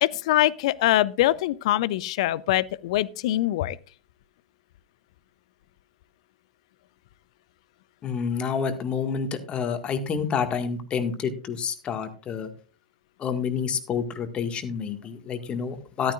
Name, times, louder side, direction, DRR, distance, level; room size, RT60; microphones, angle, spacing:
voice 1, 0.0-3.8, left 15 dB, 55° left, 0.6 m, -23 dB
voice 2, 8.0-12.5 13.2-16.1, left 6 dB, 30° left, 1.8 m, -28 dB
13.5 x 12.0 x 2.5 m
figure-of-eight pair, 95°, 4 cm